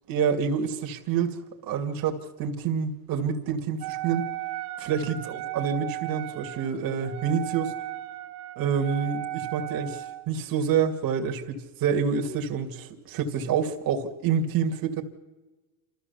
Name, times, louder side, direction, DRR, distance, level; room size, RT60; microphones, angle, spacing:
voice 1, 0.1-1.4 1.6-4.2 4.8-7.7 8.6-15.0, right 7 dB, 50° right, 4 dB, 2.4 m, -27 dB
Wind instrument woodwind instrument, 3.8-10.3, right 14 dB, 75° right, 1.9 m, -36 dB
27.5 x 14.0 x 7.1 m, 1.2 s
supercardioid pair, 125°, 46 cm